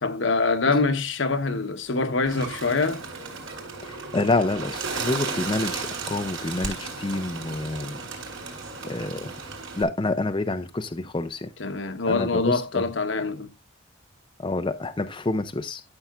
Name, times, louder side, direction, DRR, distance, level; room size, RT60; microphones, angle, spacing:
voice 1, 0.0-3.0 11.6-13.5, left 3 dB, 60° left, 1.0 m, -24 dB
Bird, 2.3-9.8, right 4 dB, 70° right, 4.0 m, -34 dB
voice 2, 3.8-8.0 8.8-9.3 9.7-11.5 12.1-12.8 14.4-15.8, left 2 dB, 25° left, 0.5 m, -28 dB
13.5 x 7.0 x 2.4 m
head